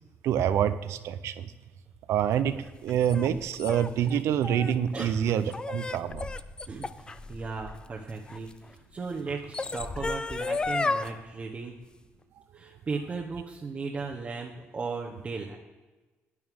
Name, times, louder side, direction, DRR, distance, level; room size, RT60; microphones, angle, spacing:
voice 1, 0.2-1.5 2.1-2.6 2.8-6.3, right 9 dB, 85° right, 12 dB, 0.6 m, -26 dB
sound 1, 2.4-8.5 9.3-11.1, left 3 dB, 20° left, 0.4 m, -33 dB
voice 2, 6.7-11.7 12.5-15.6, right 4 dB, 30° right, -2 dB, 1.0 m, -36 dB
11.0 x 9.5 x 3.6 m, 1.2 s
cardioid pair, 135°, 5 cm